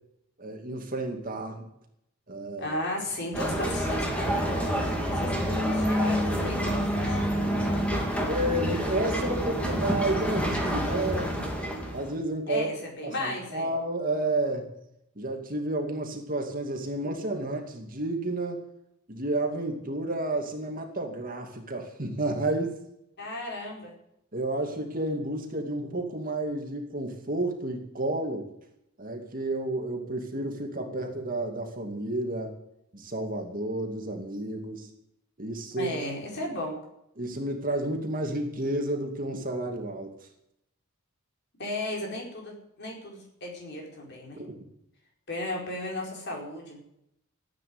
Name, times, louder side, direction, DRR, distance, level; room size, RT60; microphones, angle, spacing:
voice 1, 0.4-1.6 2.3-2.8 5.2-5.6 8.3-11.5 11.9-12.7 13.0-14.7 15.2-18.6 19.1-22.7 24.3-28.5 29.0-32.6 32.9-34.9 35.4-35.9 37.2-40.3 44.3-44.5, right 1 dB, 40° right, 3 dB, 2.4 m, -31 dB
voice 2, 2.6-4.6 5.1-7.3 12.5-13.7 23.2-23.9 35.8-36.8 41.6-44.4 45.3-46.8, left 1 dB, 50° left, 0 dB, 5.0 m, -35 dB
sound 1, 3.3-12.1, equal, 5° left, 2.5 m, -28 dB
14.0 x 9.2 x 9.5 m, 0.78 s
head